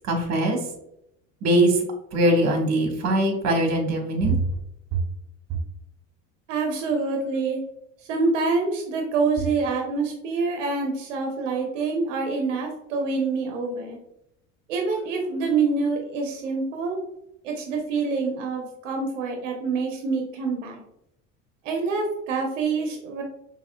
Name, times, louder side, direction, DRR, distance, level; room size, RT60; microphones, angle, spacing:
voice 1, 0.1-0.6 1.4-1.8 2.1-4.4, right 1 dB, 45° right, 3 dB, 1.3 m, -21 dB
voice 2, 6.5-7.6 8.1-14.0 14.7-17.0 17.4-20.8 21.6-23.2, right 4 dB, 90° right, 2 dB, 0.7 m, -26 dB
5.6 x 2.7 x 2.2 m, 0.79 s
supercardioid pair, 85°, 37 cm